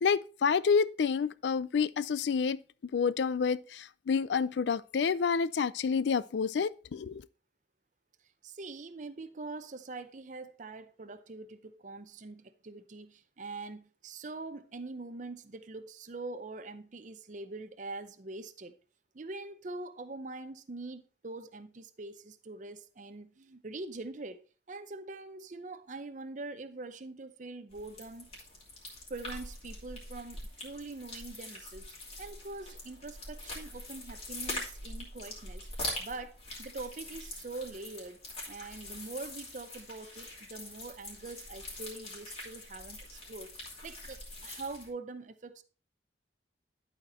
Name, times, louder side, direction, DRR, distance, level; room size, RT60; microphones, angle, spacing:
voice 1, 0.0-2.6 2.9-7.2, left 6 dB, 75° left, 0.4 m, -29 dB
voice 2, 8.4-18.8 19.1-24.4 24.7-28.3 29.1-31.9 32.2-35.7 36.0-45.6, right 3 dB, 45° right, 0.6 m, -43 dB
sound 1, 27.7-44.9, left 2 dB, 35° left, 2.8 m, -43 dB
11.5 x 4.4 x 4.3 m
head